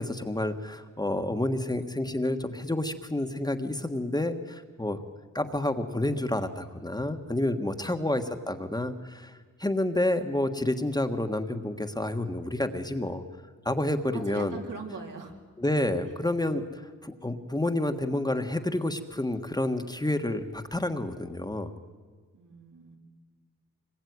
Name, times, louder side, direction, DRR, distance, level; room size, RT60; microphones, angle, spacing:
voice 1, 0.0-5.0 5.3-13.2 13.6-14.6 15.6-21.7, left 1 dB, 15° left, 6 dB, 1.5 m, -29 dB
voice 2, 14.1-15.3 22.3-23.0, right 4 dB, 80° right, 1 dB, 4.0 m, -41 dB
26.0 x 21.0 x 9.6 m, 1.5 s
wide cardioid pair, 130°, 31 cm